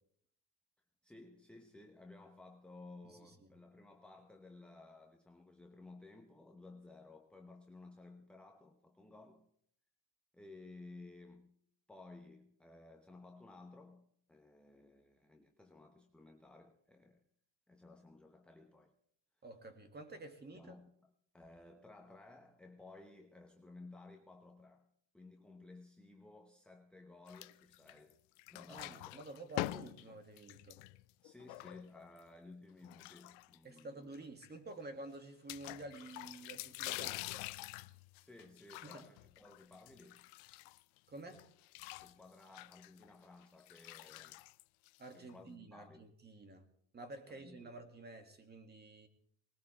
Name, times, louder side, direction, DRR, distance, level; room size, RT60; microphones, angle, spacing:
voice 1, 1.0-9.5 10.3-11.6 11.9-17.2 17.7-18.9 20.5-24.9 25.1-28.2 28.5-29.2 31.2-34.1 38.2-40.3 42.0-44.4 45.1-46.1 47.3-47.8, left 2 dB, ahead, 0.9 m, -57 dB
voice 2, 3.0-3.5 19.4-20.8 28.7-30.8 33.6-37.4 38.8-39.1 41.1-41.4 45.0-46.6 46.9-49.1, right 2 dB, 20° right, 2.2 m, -50 dB
sound 1, 27.3-28.1 28.4-32.2 32.8-33.8 34.1-34.2 34.4-34.5 35.5-41.0 41.3-45.3, left 20 dB, 80° left, 0.7 m, -46 dB
20.5 x 19.0 x 3.4 m
cardioid pair, 140°, 46 cm